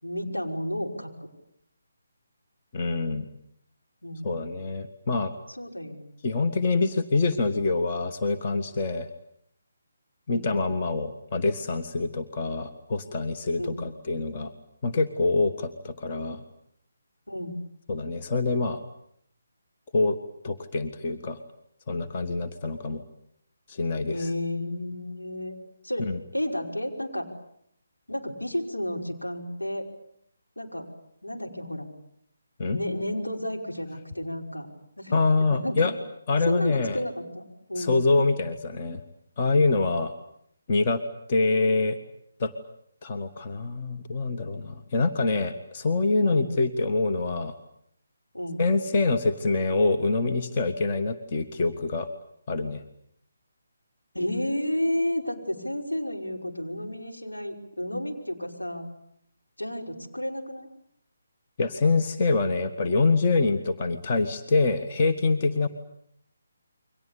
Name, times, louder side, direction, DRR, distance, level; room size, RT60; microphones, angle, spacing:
voice 1, 0.0-1.3 4.0-4.4 5.6-6.1 10.3-10.5 13.6-13.8 17.3-17.5 24.1-25.6 25.8-27.3 28.1-29.9 30.6-30.9 31.2-31.9 32.7-34.7 35.0-35.9 36.5-38.0 46.2-46.5 48.3-48.6 54.1-58.9 59.6-60.7, left 1 dB, 85° left, 2 dB, 5.6 m, -31 dB
voice 2, 2.7-3.2 4.2-5.3 6.2-9.1 10.3-14.5 14.8-16.4 17.9-18.8 19.9-20.2 20.4-21.4 21.9-23.0 23.7-24.3 26.0-26.2 32.6-32.8 35.1-35.9 36.3-37.0 37.8-39.0 39.4-40.1 40.7-41.0 41.3-42.0 42.4-42.5 43.0-47.5 48.6-52.1 52.5-52.8 61.6-65.7, left 3 dB, 35° left, 7 dB, 1.7 m, -25 dB
29.0 x 24.0 x 8.6 m, 0.71 s
figure-of-eight pair, 145°, 0 cm